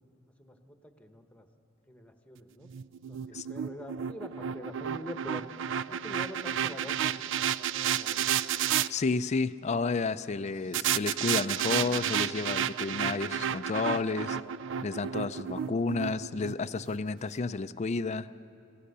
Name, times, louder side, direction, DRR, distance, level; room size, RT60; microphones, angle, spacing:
voice 1, 0.4-1.4 1.9-2.7 3.1-5.5 5.9-8.3, left 1 dB, 5° left, 6 dB, 1.1 m, -45 dB
sound 1, 2.7-8.9 10.7-17.0, right 9 dB, 65° right, 0.4 m, -31 dB
voice 2, 8.9-14.4 14.8-18.3, left 4 dB, 35° left, 12 dB, 0.4 m, -31 dB
27.5 x 16.0 x 6.8 m, 2.7 s
head